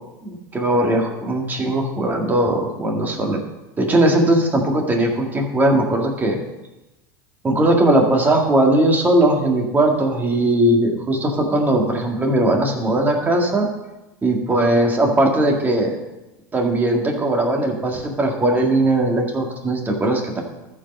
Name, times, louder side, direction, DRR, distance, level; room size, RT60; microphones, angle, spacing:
voice 1, 0.2-3.4 3.8-6.4 7.4-13.7 14.2-16.0 16.5-20.4, right 1 dB, 20° right, 0 dB, 1.9 m, -19 dB
13.0 x 4.9 x 5.4 m, 1.0 s
supercardioid pair, 125°, 10 cm